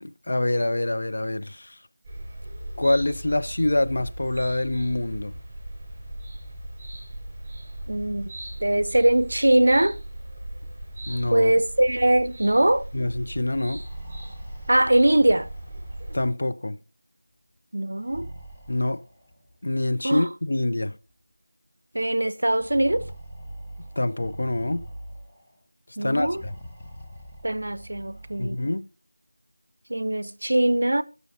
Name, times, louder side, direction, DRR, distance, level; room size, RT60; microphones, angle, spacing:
voice 1, 0.0-1.8 2.8-5.4 11.1-11.5 12.9-13.8 16.1-16.8 18.7-19.0 19.6-21.0 24.0-24.8 26.0-26.5 28.4-28.8, left 1 dB, 50° left, 0.4 m, -25 dB
sound 1, 2.0-16.3, right 1 dB, 15° right, 4.2 m, -38 dB
voice 2, 7.9-8.3 8.6-10.0 11.3-12.9 14.7-15.5 17.7-18.3 20.0-20.3 21.9-23.1 26.0-26.4 27.4-28.6 29.9-31.0, right 1 dB, 65° right, 0.5 m, -21 dB
sound 2, 13.7-16.5 17.9-19.6 20.6-20.7 21.0-21.1 22.4-25.5 26.1-28.7, right 1 dB, 5° left, 0.8 m, -43 dB
12.0 x 6.3 x 2.5 m
figure-of-eight pair, 170°, 0 cm